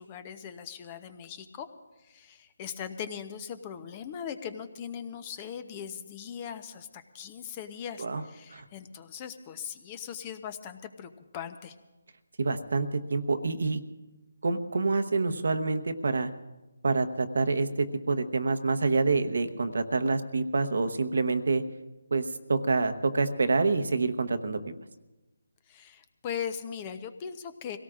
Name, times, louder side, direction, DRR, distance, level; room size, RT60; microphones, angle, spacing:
voice 1, 0.0-1.7 2.0-11.8 25.7-27.8, left 8 dB, 25° left, 11 dB, 0.7 m, -39 dB
voice 2, 12.4-13.8 14.4-16.3 16.8-21.6 22.1-24.6, right 3 dB, 70° right, 9 dB, 1.0 m, -27 dB
24.5 x 17.5 x 2.5 m, 1.1 s
figure-of-eight pair, 160°, 0 cm